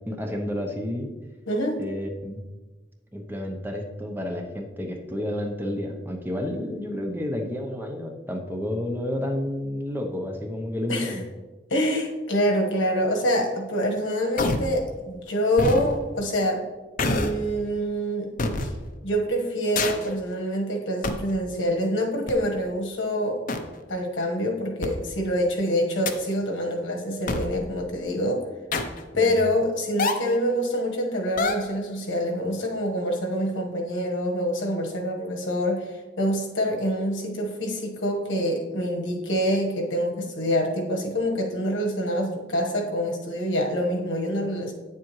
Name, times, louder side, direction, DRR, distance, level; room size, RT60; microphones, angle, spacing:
voice 1, 0.1-1.2 1.8-2.4 3.1-11.2 29.1-29.4, left 1 dB, 10° right, 2 dB, 0.7 m, -30 dB
voice 2, 1.5-1.8 10.9-11.2 11.7-16.6 17.1-18.3 18.6-18.7 19.0-23.4 23.9-28.4 29.1-44.7, equal, 85° left, 2 dB, 1.3 m, -26 dB
sound 1, 14.4-14.7 15.6-15.9 17.0-17.4 18.4-18.7 19.8-20.1 21.0-21.3 22.3-22.4 23.5-23.6 24.8-24.9 26.1-26.3 27.3-27.5 28.7-29.0 30.0-30.4 31.4-31.8, left 3 dB, 45° left, 0.7 m, -25 dB
9.0 x 7.2 x 3.1 m, 1.3 s
head